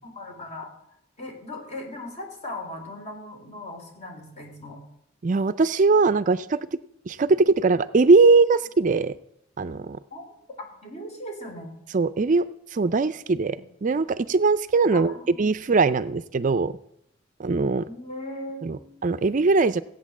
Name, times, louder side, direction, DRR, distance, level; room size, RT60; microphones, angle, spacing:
voice 1, 0.0-4.8 10.1-10.3 10.6-11.7 13.5-13.7 14.9-15.4 17.8-19.0, left 1 dB, 35° left, 2 dB, 3.9 m, -38 dB
voice 2, 5.2-6.8 7.1-9.2 9.6-10.0 11.9-12.5 12.7-16.7 17.4-17.9 18.6-19.8, right 4 dB, 40° right, 13 dB, 0.4 m, -21 dB
16.0 x 8.9 x 7.2 m, 0.77 s
head